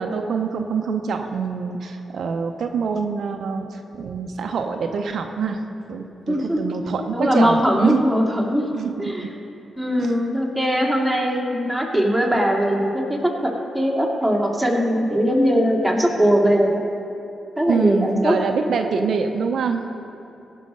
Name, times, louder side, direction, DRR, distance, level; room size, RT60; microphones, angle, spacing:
voice 1, 0.0-5.6 5.9-8.0 8.7-8.9 9.2-9.3 10.0-10.1 17.7-19.9, right 5 dB, 70° right, 5 dB, 0.6 m, -25 dB
voice 2, 6.3-6.7 7.1-8.7 9.0-9.3 9.8-16.8 17.6-18.4, equal, ahead, -1 dB, 2.3 m, -20 dB
16.5 x 5.6 x 5.4 m, 2.9 s
supercardioid pair, 60°, 0 cm